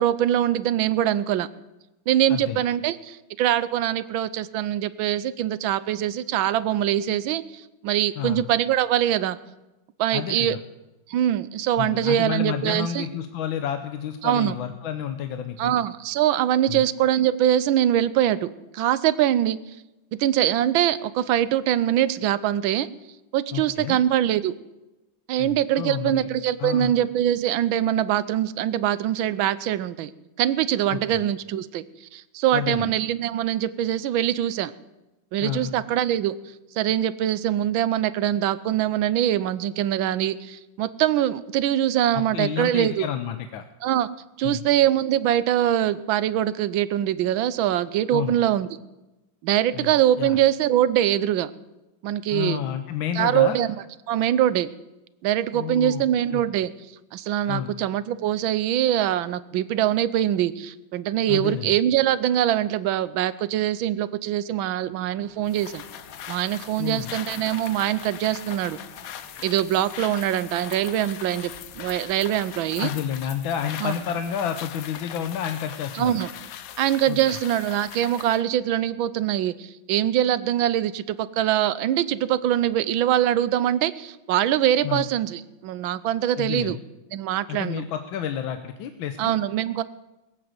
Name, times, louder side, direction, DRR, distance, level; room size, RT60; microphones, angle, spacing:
voice 1, 0.0-1.5 2.1-9.4 10.0-10.6 11.1-13.1 14.2-14.5 15.6-19.6 20.1-22.9 23.3-24.6 25.3-30.1 30.4-34.7 35.3-36.4 36.7-43.1 43.8-44.1 44.4-48.7 49.4-51.5 52.0-52.6 53.1-53.7 54.1-54.7 55.2-56.7 57.1-65.8 66.3-68.8 69.4-72.9 73.8-73.9 75.9-76.3 76.8-86.8 87.1-87.8 89.2-89.8, right 11 dB, 80° right, 16 dB, 1.5 m, -23 dB
voice 2, 2.3-2.6 8.2-8.4 10.1-10.6 11.8-15.7 16.7-16.8 23.5-24.0 25.4-26.3 26.6-26.9 30.9-31.2 32.5-32.9 35.4-35.7 42.1-43.6 44.4-44.6 48.1-48.4 49.7-49.9 50.2-50.4 52.3-53.6 55.5-56.0 56.3-56.4 57.5-57.7 61.3-61.7 66.8-67.1 72.8-76.2 77.1-77.2 84.8-85.1 86.4-86.8 87.5-89.4, left 9 dB, 80° left, 8 dB, 1.6 m, -30 dB
Bus / Idling / Screech, 65.2-73.2, right 1 dB, 15° right, 2.2 m, -53 dB
sound 1, 65.5-78.5, left 10 dB, 65° left, 0.9 m, -40 dB
21.5 x 7.9 x 7.8 m, 1.0 s
omnidirectional pair, 2.1 m